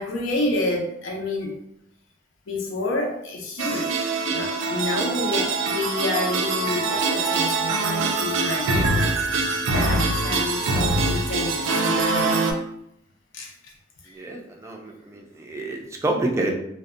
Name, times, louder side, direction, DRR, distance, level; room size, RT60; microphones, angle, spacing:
voice 1, 0.0-1.6 2.5-4.0 4.3-9.0 9.7-12.5 13.3-13.5 14.0-14.2, left 2 dB, 75° left, 0 dB, 0.5 m, -29 dB
sound 1, 3.6-12.5, right 3 dB, 90° right, 0.4 m, -24 dB
voice 2, 14.1-16.5, right 2 dB, 15° right, 0 dB, 0.3 m, -28 dB
2.6 x 2.1 x 2.4 m, 0.75 s
head